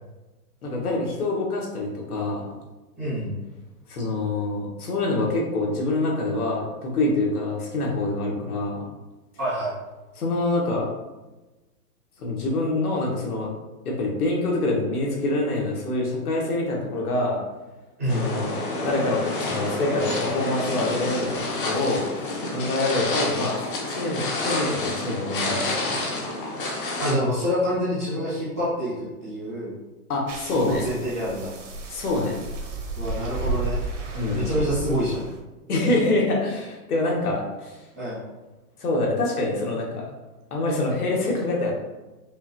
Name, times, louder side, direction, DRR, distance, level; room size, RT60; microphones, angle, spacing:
voice 1, 0.6-2.5 3.9-8.8 10.2-10.9 12.2-13.5 13.8-17.4 18.1-18.5 18.8-26.0 30.1-30.9 31.9-32.4 34.1-34.5 35.7-37.8 38.8-40.0 40.5-41.7, left 2 dB, 70° left, -2 dB, 1.4 m, -26 dB
voice 2, 3.0-3.4 9.4-9.8 18.0-18.3 27.0-28.9 29.2-29.7 30.5-31.5 32.9-33.8 34.3-35.2 37.9-38.2, equal, 10° right, -15 dB, 0.5 m, -26 dB
sound 1, 18.1-27.1, left 2 dB, 35° left, 0.7 m, -29 dB
sound 2, 30.3-35.4, right 2 dB, 50° right, 0.9 m, -32 dB
5.3 x 2.5 x 2.9 m, 1.1 s
hypercardioid pair, 165°, 46 cm